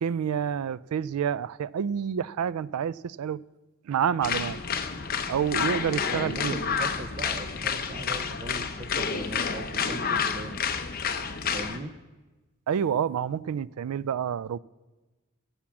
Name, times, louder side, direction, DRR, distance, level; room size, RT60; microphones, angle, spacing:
voice 1, 0.0-3.4 3.9-4.6 5.3-6.5 12.7-14.6, right 8 dB, 85° right, 0.3 m, -28 dB
sound 1, 4.2-11.8, left 6 dB, 45° left, 0.7 m, -29 dB
voice 2, 6.1-10.6 11.5-11.9, right 2 dB, 30° right, 0.5 m, -39 dB
13.5 x 7.2 x 7.2 m
head